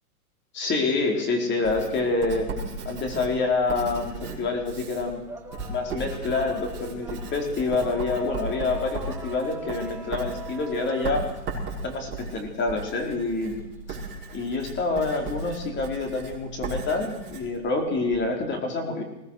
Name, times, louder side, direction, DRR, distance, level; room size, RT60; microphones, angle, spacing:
voice 1, 0.5-2.5 2.8-5.3 5.7-11.3 11.8-13.6 13.9-14.0 14.3-19.0, left 3 dB, 25° left, 2 dB, 4.3 m, -27 dB
Writing, 1.6-18.3, right 2 dB, 25° right, 5.8 m, -36 dB
sound 1, 3.0-4.3 4.6-12.4, right 2 dB, 5° right, 1.7 m, -42 dB
22.0 x 18.0 x 6.5 m, 0.94 s
hypercardioid pair, 135°, 45 cm